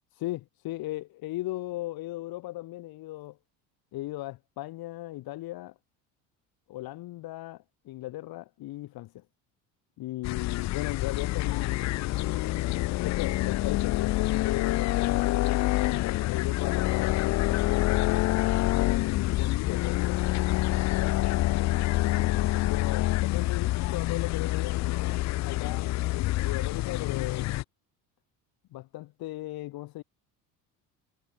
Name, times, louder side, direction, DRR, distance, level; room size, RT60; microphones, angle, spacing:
voice 1, 0.2-3.4 3.9-5.7 6.7-9.2 10.0-12.6 13.0-18.0 18.7-20.2 20.7-21.7 21.9-22.4 22.7-27.5 28.7-30.0, left 17 dB, 65° left, 4.1 m, -37 dB
sound 1, 10.2-27.6, left 18 dB, 45° left, 0.5 m, -27 dB
cardioid pair, 115°, 39 cm